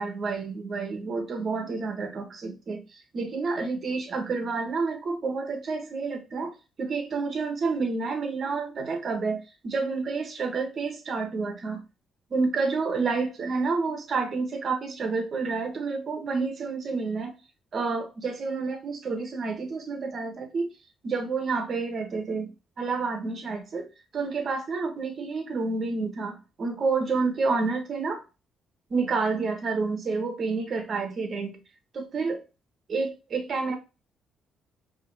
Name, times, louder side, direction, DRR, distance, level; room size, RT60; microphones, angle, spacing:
voice 1, 0.0-2.8 3.1-6.5 6.8-11.8 12.3-17.4 17.7-20.7 21.0-23.9 24.1-28.2 28.9-31.6 31.9-32.4 32.9-33.8, right 4 dB, 50° right, 1.3 m, -29 dB
4.9 x 3.0 x 2.8 m
cardioid pair, 85°, 0 cm